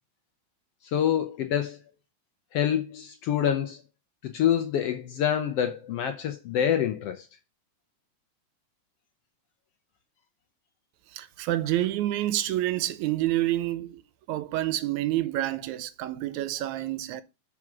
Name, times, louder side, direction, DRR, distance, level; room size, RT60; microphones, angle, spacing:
voice 1, 0.8-1.8 2.5-3.8 4.2-7.3, left 9 dB, 75° left, 1.4 m, -26 dB
voice 2, 11.1-14.0 14.3-17.2, right 14 dB, 80° right, 2.0 m, -28 dB
6.1 x 4.9 x 6.0 m
omnidirectional pair, 3.4 m